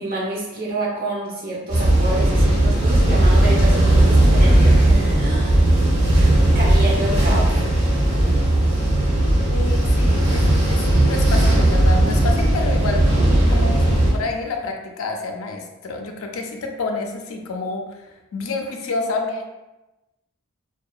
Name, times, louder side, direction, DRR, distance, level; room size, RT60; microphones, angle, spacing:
voice 1, 0.0-5.6 6.5-7.5 13.1-13.6, right 1 dB, 45° right, -5 dB, 0.8 m, -28 dB
sound 1, 1.7-14.1, right 1 dB, 70° right, 1.1 m, -16 dB
voice 2, 9.5-13.0 13.5-18.0 18.3-19.4, left 3 dB, 70° left, 3 dB, 0.4 m, -28 dB
2.7 x 2.2 x 2.3 m, 1.0 s
head